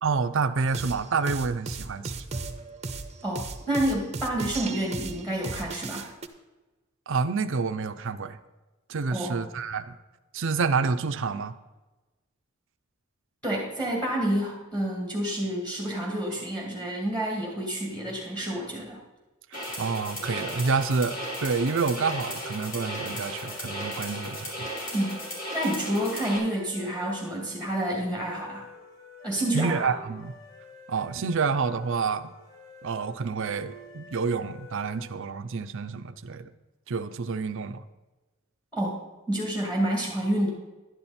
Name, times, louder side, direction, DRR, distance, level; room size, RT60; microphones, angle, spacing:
voice 1, 0.0-2.2 7.1-8.4 8.9-10.0 10.3-11.6 19.5-24.7 29.5-30.3 30.9-32.3 32.8-36.5 36.9-37.8, right 4 dB, 65° right, 9 dB, 0.6 m, -28 dB
sound 1, 0.7-6.3, right 3 dB, 30° right, 0.8 m, -36 dB
voice 2, 3.2-6.1 9.1-9.4 13.4-19.0 24.9-25.2 25.5-28.7 29.2-29.9 38.7-39.0 39.3-40.5, right 1 dB, 5° left, -2 dB, 2.1 m, -29 dB
sound 2, 19.5-26.4, equal, 40° left, 4.4 m, -35 dB
sound 3, 20.2-35.2, left 1 dB, 75° left, 4.2 m, -49 dB
11.5 x 10.5 x 4.2 m, 1.1 s
head